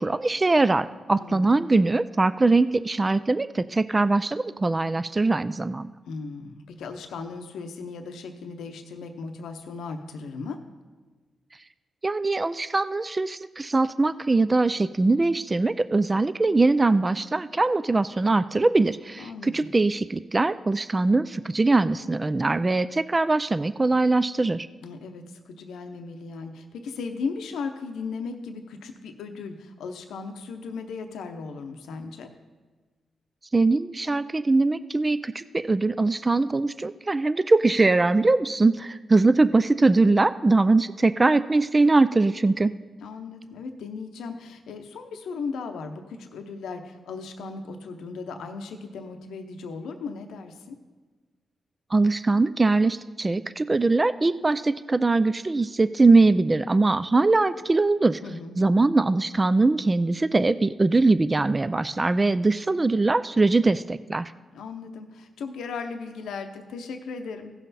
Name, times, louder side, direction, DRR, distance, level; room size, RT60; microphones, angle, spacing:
voice 1, 0.0-5.9 12.0-24.7 33.5-42.7 51.9-58.2 58.6-64.3, right 3 dB, 30° right, 14 dB, 0.4 m, -22 dB
voice 2, 1.1-1.4 6.1-10.6 19.2-19.5 24.8-32.3 43.0-50.8 58.2-58.6 64.5-67.5, left 4 dB, 90° left, 6 dB, 0.7 m, -36 dB
16.0 x 5.7 x 4.1 m, 1.3 s
cardioid pair, 65°, 0 cm